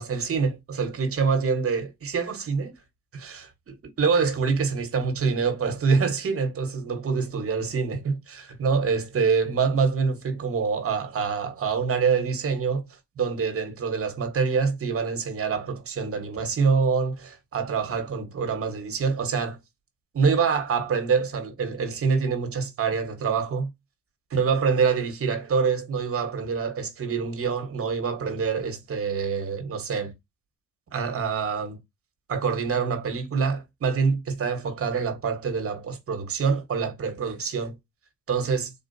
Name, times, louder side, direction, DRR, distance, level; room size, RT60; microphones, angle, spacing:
voice 1, 0.0-2.7 3.1-3.5 4.0-12.8 13.2-19.6 20.1-23.7 24.3-30.1 30.9-31.8 32.3-37.7 38.3-38.7, right 5 dB, 50° right, 1.2 m, -25 dB
3.9 x 2.4 x 2.6 m
cardioid pair, 90°, 30 cm